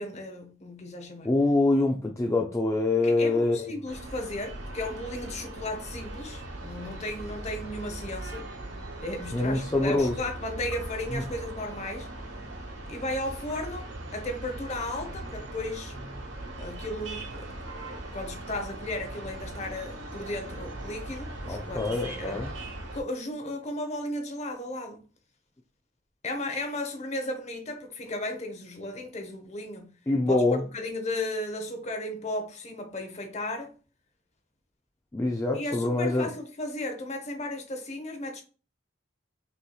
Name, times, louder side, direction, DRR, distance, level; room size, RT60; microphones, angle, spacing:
voice 1, 0.0-1.3 3.0-8.5 9.0-12.1 12.9-15.9 16.6-17.5 18.1-22.4 22.9-25.0 26.2-29.9 30.3-33.7 35.5-38.4, left 1 dB, 35° left, 0.8 m, -35 dB
voice 2, 1.2-3.7 9.3-10.1 11.1-11.2 21.5-22.5 30.1-30.6 35.1-36.3, left 2 dB, 15° left, 0.4 m, -25 dB
sound 1, 3.9-23.0, right 1 dB, 60° right, 1.1 m, -39 dB
5.5 x 2.9 x 2.3 m
head